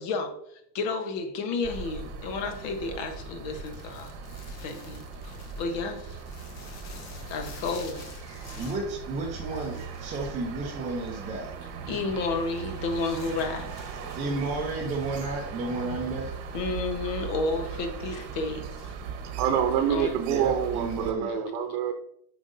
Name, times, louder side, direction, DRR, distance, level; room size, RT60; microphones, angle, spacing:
voice 1, 0.0-4.1 4.5-6.2 7.3-8.0 11.9-14.0 16.5-18.9 19.9-20.1, left 3 dB, 55° left, 1.1 m, -32 dB
sound 1, 1.6-21.1, right 6 dB, 60° right, 1.2 m, -39 dB
sound 2, 3.5-15.4, left 4 dB, 35° left, 0.7 m, -50 dB
voice 2, 8.6-11.5 14.1-16.5 20.2-21.4, right 2 dB, 15° right, 0.7 m, -32 dB
voice 3, 19.4-21.9, right 8 dB, 75° right, 0.8 m, -26 dB
7.4 x 5.1 x 2.6 m
cardioid pair, 160°, 50 cm